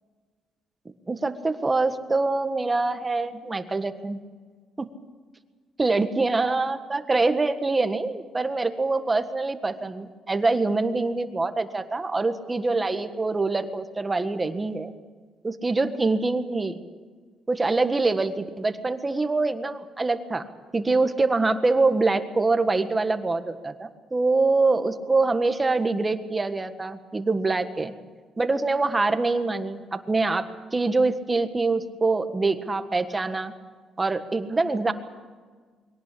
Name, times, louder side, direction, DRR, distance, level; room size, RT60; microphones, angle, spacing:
voice 1, 1.1-4.2 4.8-4.9 5.8-14.9 15.4-16.8 17.5-20.4 20.7-27.9 28.4-33.5 34.0-34.9, right 3 dB, 20° right, 9 dB, 1.6 m, -24 dB
22.5 x 18.0 x 8.6 m, 1.5 s
cardioid pair, 95°, 0 cm